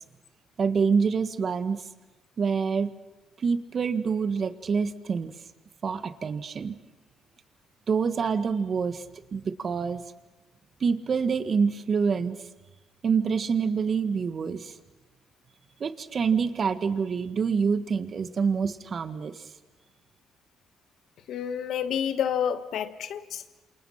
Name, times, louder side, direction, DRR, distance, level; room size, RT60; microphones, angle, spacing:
voice 1, 0.6-1.8 2.4-2.9 3.4-5.3 5.8-6.7 7.9-9.0 9.3-10.0 10.8-12.4 13.0-14.7 15.8-19.4, right 5 dB, 45° right, 11 dB, 1.6 m, -26 dB
voice 2, 21.3-23.4, left 8 dB, 75° left, 12 dB, 1.4 m, -29 dB
28.0 x 27.5 x 5.8 m, 1.1 s
cardioid pair, 90°, 0 cm